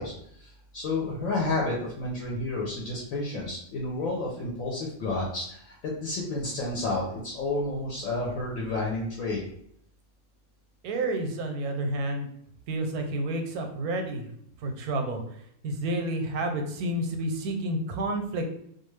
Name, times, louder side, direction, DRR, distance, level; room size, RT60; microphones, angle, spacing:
voice 1, 0.0-9.4, left 2 dB, 70° left, -3 dB, 1.0 m, -31 dB
voice 2, 10.8-12.3 12.7-14.3 14.6-15.2 15.6-18.4, right 1 dB, 85° right, 4 dB, 1.1 m, -30 dB
2.5 x 2.3 x 3.1 m, 0.68 s
omnidirectional pair, 1.5 m